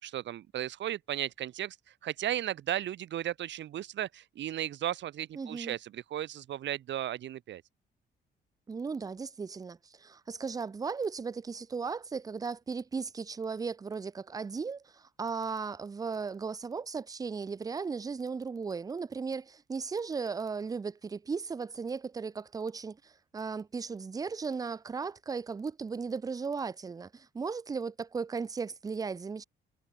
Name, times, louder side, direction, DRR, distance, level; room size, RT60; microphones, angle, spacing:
voice 1, 0.0-1.8 2.0-7.6, right 12 dB, 65° right, 1.0 m, -35 dB
voice 2, 5.4-5.8 8.7-29.4, right 5 dB, 20° right, 0.4 m, -36 dB
cardioid pair, 90°, 20 cm